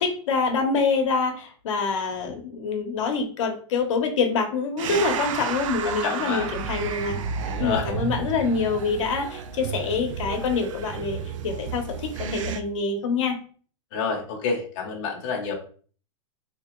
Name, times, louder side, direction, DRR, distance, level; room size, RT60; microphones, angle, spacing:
voice 1, 0.0-7.2 7.6-13.4, left 4 dB, 75° left, 4 dB, 0.9 m, -26 dB
sound 1, 4.8-12.6, right 6 dB, 80° right, 0.5 m, -32 dB
voice 2, 5.8-6.5 7.4-7.9 13.9-15.5, left 5 dB, 45° left, -1 dB, 0.8 m, -28 dB
3.4 x 2.9 x 2.9 m, 0.43 s
supercardioid pair, 165°, 16 cm